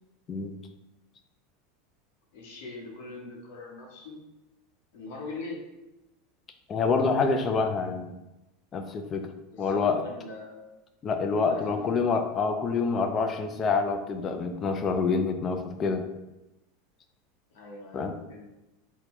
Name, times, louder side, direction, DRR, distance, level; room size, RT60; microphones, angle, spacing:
voice 1, 2.3-4.2 4.9-5.6 9.5-10.6 11.3-11.9 17.5-18.5, left 3 dB, 75° left, -1 dB, 0.9 m, -42 dB
voice 2, 6.7-8.1 8.7-9.3 9.6-10.0 11.0-16.0 17.9-18.1, left 4 dB, 30° left, 7 dB, 0.3 m, -27 dB
3.6 x 2.2 x 2.9 m, 0.96 s
supercardioid pair, 135°, 0 cm